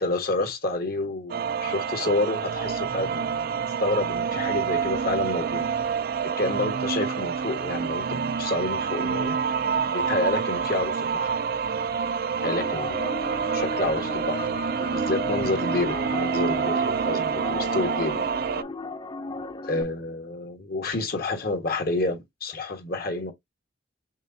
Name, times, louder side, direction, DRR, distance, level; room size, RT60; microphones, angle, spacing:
voice 1, 0.0-3.5 3.8-5.6 6.4-9.4 9.9-11.3 12.4-13.1 13.4-14.4 14.8-18.2 19.6-23.3, left 2 dB, 50° left, 1.3 m, -29 dB
sound 1, 1.3-18.6, right 6 dB, 50° right, 0.4 m, -27 dB
sound 2, 12.4-19.8, left 3 dB, 20° left, 0.3 m, -35 dB
6.3 x 2.3 x 2.7 m
head